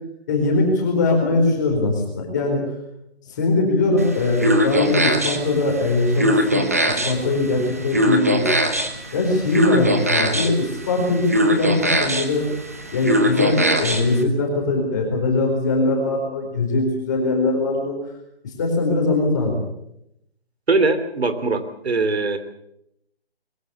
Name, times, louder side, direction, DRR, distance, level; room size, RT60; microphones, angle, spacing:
voice 1, 0.3-2.6 3.3-8.5 9.1-11.3 11.6-12.4 12.9-17.9 18.4-19.6, left 2 dB, 15° left, 1 dB, 4.3 m, -21 dB
sound 1, 4.0-14.2, equal, 15° right, 0.9 m, -22 dB
voice 2, 20.7-22.4, right 3 dB, 75° right, 11 dB, 3.2 m, -21 dB
22.5 x 16.5 x 8.4 m, 0.78 s
hypercardioid pair, 180°, 32 cm